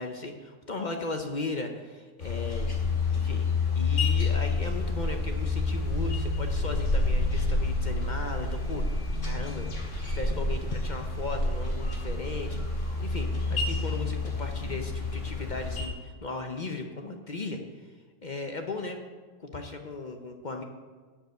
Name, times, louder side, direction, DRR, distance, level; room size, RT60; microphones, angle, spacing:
voice 1, 0.0-2.7 3.1-3.4 3.8-9.7 10.1-17.9 18.2-19.0 19.4-20.6, left 3 dB, 40° left, 4 dB, 0.8 m, -37 dB
sound 1, 2.2-15.9, left 3 dB, 70° left, 2.3 m, -28 dB
10.0 x 5.3 x 7.9 m, 1.5 s
omnidirectional pair, 1.3 m